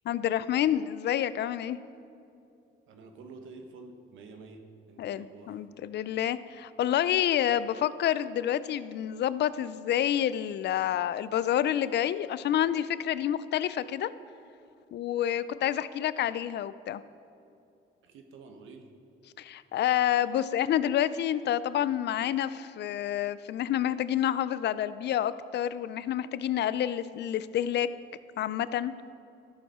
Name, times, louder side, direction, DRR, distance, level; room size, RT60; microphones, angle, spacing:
voice 1, 0.1-1.8 5.0-14.1 14.9-17.0 19.4-27.9 28.4-28.9, left 11 dB, 60° left, 15 dB, 0.4 m, -28 dB
voice 2, 2.9-4.6 4.9-5.6 18.0-18.9, right 3 dB, 80° right, 5 dB, 1.1 m, -48 dB
13.0 x 6.6 x 4.3 m, 2.7 s
cardioid pair, 90°, 20 cm